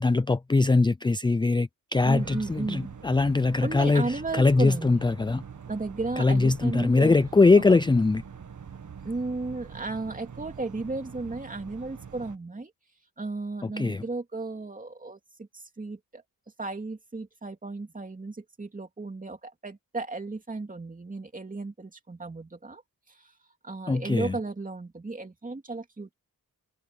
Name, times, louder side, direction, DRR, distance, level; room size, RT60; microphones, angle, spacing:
voice 1, 0.0-5.4 6.2-8.2 13.8-14.0 23.9-24.3, left 3 dB, 15° left, 0.4 m, -22 dB
sound 1, 1.9-12.4, right 7 dB, 55° right, 1.8 m, -44 dB
voice 2, 2.0-2.9 3.6-5.0 5.7-7.2 7.7-7.8 9.0-12.7 13.2-16.2 16.6-22.8 23.1-23.3 23.6-26.1, right 3 dB, 25° right, 2.7 m, -34 dB
wide cardioid pair, 140°, 35 cm